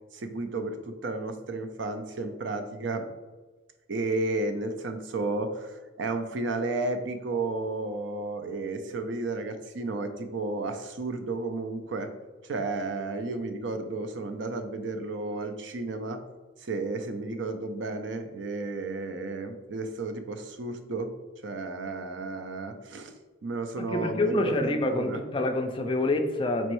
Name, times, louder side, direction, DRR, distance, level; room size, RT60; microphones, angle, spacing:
voice 1, 0.1-3.1 3.9-12.1 12.4-16.2 16.6-21.1 21.4-23.1 23.4-25.2, right 3 dB, 65° right, 7 dB, 0.4 m, -32 dB
voice 2, 23.8-26.7, left 2 dB, 25° left, 5 dB, 0.3 m, -27 dB
4.4 x 3.0 x 3.0 m, 1.2 s
head